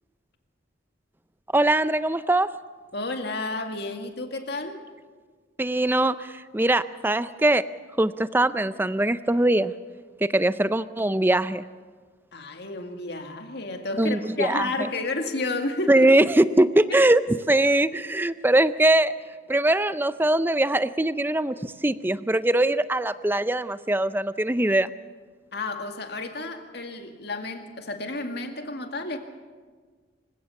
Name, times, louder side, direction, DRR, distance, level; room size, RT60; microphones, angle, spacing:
voice 1, 1.5-2.6 5.6-7.6 8.0-9.7 10.2-11.6 14.0-14.7 15.9-19.1 19.5-24.9, right 1 dB, 10° right, 14 dB, 0.5 m, -22 dB
voice 2, 2.9-4.8 12.3-16.1 16.9-17.0 25.5-29.2, left 2 dB, 55° left, 5 dB, 2.1 m, -31 dB
26.0 x 16.0 x 7.1 m, 1.5 s
head